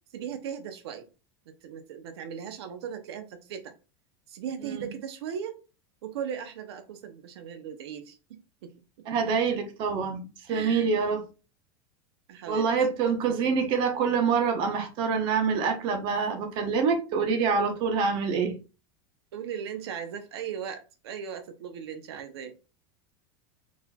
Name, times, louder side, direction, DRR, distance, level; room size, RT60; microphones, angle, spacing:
voice 1, 0.1-1.1 1.6-3.7 4.3-5.6 6.0-8.7 10.5-10.9 12.3-12.7 19.3-22.5, right 8 dB, 85° right, 0.8 m, -38 dB
voice 2, 9.1-11.2 12.5-18.6, right 5 dB, 40° right, 0.9 m, -26 dB
4.3 x 4.1 x 2.3 m
supercardioid pair, 160°, 13 cm